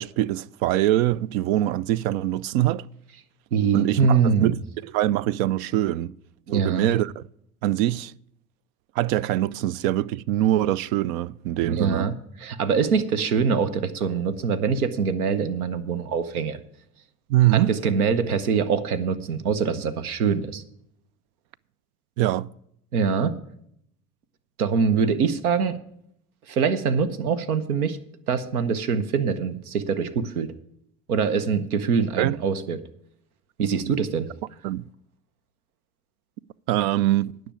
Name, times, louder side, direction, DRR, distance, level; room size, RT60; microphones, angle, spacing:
voice 1, 0.0-2.9 3.7-4.5 4.8-6.1 6.5-7.2 7.6-8.1 9.0-12.0 17.3-17.7 22.2-22.5 32.2-32.4 34.6-34.8 36.7-37.3, right 14 dB, 70° right, 0.5 m, -23 dB
voice 2, 3.5-4.6 6.5-6.9 11.6-16.6 17.5-20.6 22.9-23.4 24.6-25.8 26.5-28.0 28.3-30.5 31.1-32.8 33.6-34.3, right 6 dB, 85° right, 0.9 m, -24 dB
9.8 x 6.1 x 8.7 m
hypercardioid pair, 75°, 43 cm